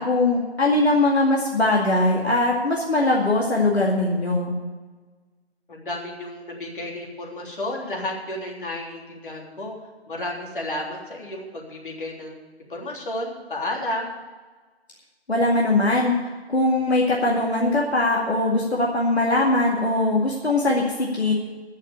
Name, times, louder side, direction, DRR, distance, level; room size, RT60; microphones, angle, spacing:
voice 1, 0.0-4.5 15.3-16.2 16.5-21.3, left 2 dB, 75° left, -3 dB, 2.3 m, -21 dB
voice 2, 5.7-9.7 10.1-12.4 12.7-14.1, left 1 dB, 50° left, -2 dB, 3.3 m, -32 dB
14.0 x 6.5 x 8.4 m, 1.3 s
figure-of-eight pair, 155°, 33 cm